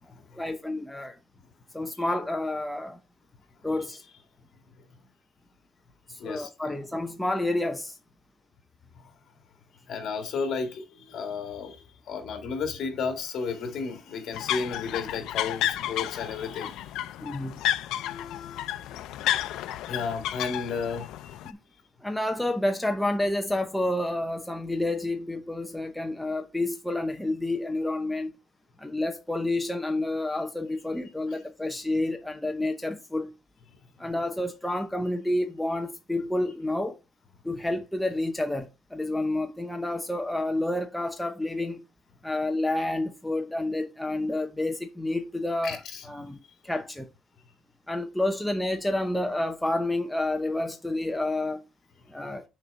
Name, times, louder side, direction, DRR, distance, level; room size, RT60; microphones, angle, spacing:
voice 1, 0.3-1.2 1.7-3.0 3.6-4.0 6.2-7.9 17.2-17.6 21.4-21.6 22.0-28.3 28.8-33.3 34.0-37.0 37.4-41.8 42.2-45.8 46.0-46.4 46.6-47.1 47.9-51.6 52.1-52.4, left 1 dB, 5° left, 0.7 m, -29 dB
voice 2, 6.2-6.5 8.9-9.1 9.9-16.9 18.0-19.0 19.9-21.3 45.6-46.1 52.2-52.3, left 5 dB, 60° left, 2.0 m, -33 dB
sound 1, 14.3-21.5, left 12 dB, 85° left, 0.5 m, -32 dB
6.4 x 4.4 x 5.2 m
cardioid pair, 140°, 0 cm